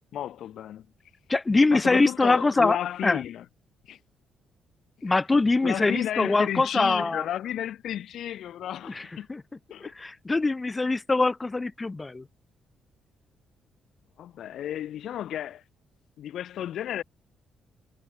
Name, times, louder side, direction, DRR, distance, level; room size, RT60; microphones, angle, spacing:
voice 1, 0.1-0.9 1.7-3.4 3.8-4.0 5.0-5.2 5.6-9.3 9.7-9.9 14.2-15.6 16.2-17.0, left 11 dB, 70° left, 7.5 m, -33 dB
voice 2, 1.3-2.8 3.0-3.2 5.0-7.2 8.9-9.0 9.3-9.4 9.8-12.2, left 3 dB, 20° left, 7.9 m, -23 dB
cardioid pair, 90°, 0 cm